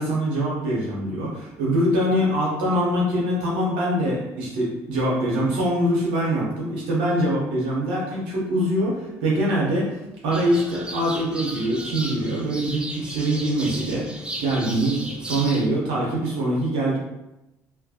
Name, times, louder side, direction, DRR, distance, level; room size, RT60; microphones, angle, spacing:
voice 1, 0.0-10.0 10.2-17.0, right 1 dB, 80° right, -4 dB, 0.9 m, -24 dB
sound 1, 10.3-15.7, right 1 dB, 10° right, 0.4 m, -35 dB
2.4 x 2.1 x 2.7 m, 0.95 s
hypercardioid pair, 65°, 8 cm